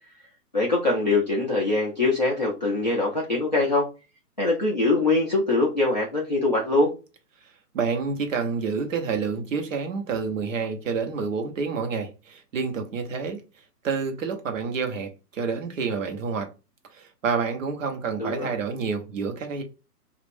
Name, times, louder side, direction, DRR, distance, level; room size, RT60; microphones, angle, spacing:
voice 1, 0.5-3.9 4.4-6.9 18.2-18.5, left 2 dB, 30° left, 0.4 m, -23 dB
voice 2, 7.7-13.4 13.8-16.5 16.9-19.6, right 5 dB, 50° right, 0.9 m, -28 dB
3.0 x 2.5 x 3.3 m
hypercardioid pair, 160°, 49 cm